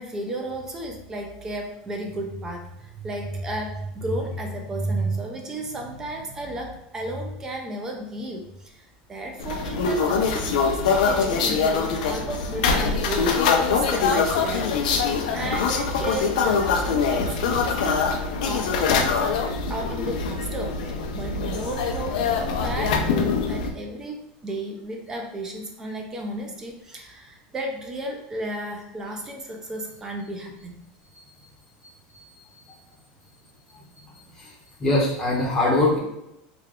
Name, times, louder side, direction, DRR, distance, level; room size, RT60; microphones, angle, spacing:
voice 1, 0.0-13.4 13.7-18.0 18.4-19.4 19.7-30.8, right 1 dB, 15° right, 1 dB, 0.3 m, -33 dB
sound 1, 9.4-23.7, left 5 dB, 90° left, 0.5 m, -23 dB
voice 2, 34.8-36.0, left 2 dB, 10° left, -4 dB, 0.7 m, -22 dB
3.3 x 2.2 x 3.6 m, 0.86 s
supercardioid pair, 180°, 4 cm